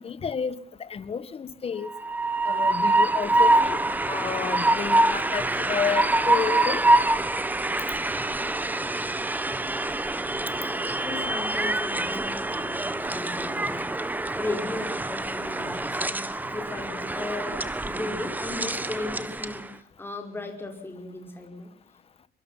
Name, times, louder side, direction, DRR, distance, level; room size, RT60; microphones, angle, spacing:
voice 1, 0.0-1.9 2.4-3.8 4.1-6.8, left 6 dB, 35° left, 14 dB, 1.5 m, -31 dB
Train, 1.8-19.6, right 2 dB, 10° right, 1.2 m, -25 dB
voice 2, 11.0-13.9 14.3-21.7, left 2 dB, 10° left, 3 dB, 5.1 m, -36 dB
25.0 x 23.5 x 5.8 m, 0.63 s
cardioid pair, 175°, 18 cm